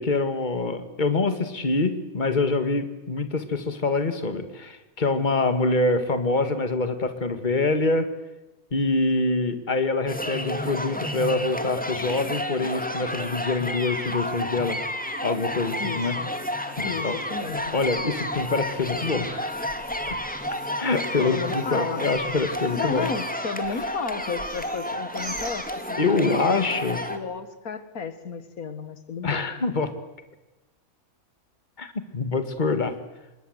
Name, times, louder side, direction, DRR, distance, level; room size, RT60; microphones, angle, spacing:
voice 1, 0.0-8.1 8.7-14.8 15.2-16.2 16.8-17.2 17.7-19.6 20.1-20.2 20.8-23.1 26.0-27.0 29.2-29.9 31.8-32.9, left 3 dB, 35° left, 9 dB, 2.0 m, -25 dB
sound 1, 10.1-27.2, left 1 dB, 5° left, 2.0 m, -31 dB
voice 2, 15.8-16.3 16.8-17.8 21.2-22.1 22.8-26.6 27.1-29.5, left 5 dB, 85° left, 12 dB, 2.0 m, -33 dB
Bird, 17.3-26.2, right 1 dB, 90° right, 7.8 m, -47 dB
26.5 x 21.0 x 8.0 m, 1.0 s
omnidirectional pair, 1.5 m